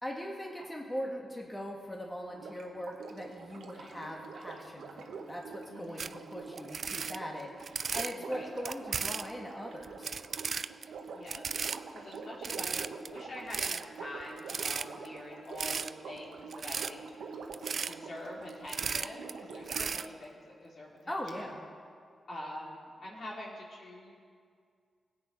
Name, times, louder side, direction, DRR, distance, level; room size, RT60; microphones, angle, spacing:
voice 1, 0.0-10.1 21.1-21.7, equal, 15° left, -1 dB, 1.6 m, -40 dB
Sink (filling or washing), 2.3-20.1 21.3-21.4, right 4 dB, 90° right, 1.0 m, -46 dB
voice 2, 5.7-6.1 8.2-8.5 10.8-11.5 11.9-17.0 17.8-21.6 22.3-24.1, left 1 dB, 60° left, -3 dB, 2.8 m, -45 dB
sound 1, 6.0-6.1 6.6-8.1 8.6-9.3 9.8-10.8 11.3-11.8 12.1-12.2 12.4-13.1 13.5-13.8 14.4-15.1 15.6-15.9 16.5-16.9 17.5-17.9 18.5-19.3 19.7-20.1, right 5 dB, 60° right, 0.3 m, -35 dB
17.0 x 8.5 x 5.3 m, 2.1 s
cardioid pair, 70°, 0 cm